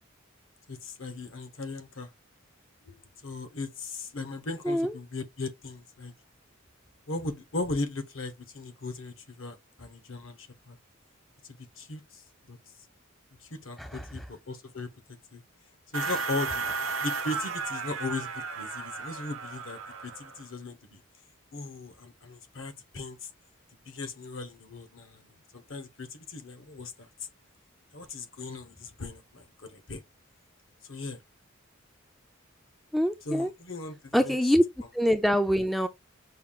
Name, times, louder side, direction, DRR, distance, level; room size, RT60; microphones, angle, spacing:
voice 1, 0.7-2.1 2.8-2.9 3.2-6.1 7.1-10.8 11.4-12.6 13.4-14.9 15.3-15.4 15.9-16.6 17.0-21.0 21.5-23.3 23.9-27.3 27.9-30.0 30.8-31.2 33.2-34.6 34.8-34.9, left 2 dB, 75° left, 1.0 m, -38 dB
sound 1, 15.9-20.5, right 4 dB, 80° right, 0.7 m, -34 dB
voice 2, 32.9-33.5 34.1-34.6 34.9-35.9, equal, ahead, 0.3 m, -24 dB
5.6 x 2.4 x 3.7 m
head